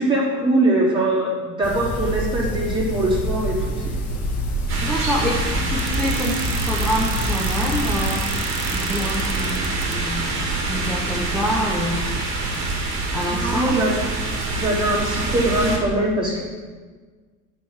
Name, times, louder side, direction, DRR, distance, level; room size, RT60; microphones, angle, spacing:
voice 1, 0.0-3.6 3.8-4.2 13.3-13.9 14.5-16.4, right 1 dB, 15° right, -6 dB, 3.6 m, -22 dB
sound 1, 1.6-8.0, equal, 50° left, 1.9 m, -27 dB
sound 2, 4.7-15.8, right 3 dB, 35° right, 2.6 m, -25 dB
voice 2, 4.8-8.2 8.7-10.3 10.6-12.1 13.1-13.8, equal, ahead, -4 dB, 1.2 m, -26 dB
sound 3, 5.8-9.9, right 13 dB, 85° right, 0.9 m, -34 dB
9.4 x 5.8 x 7.3 m, 1.4 s
cardioid pair, 140°, 34 cm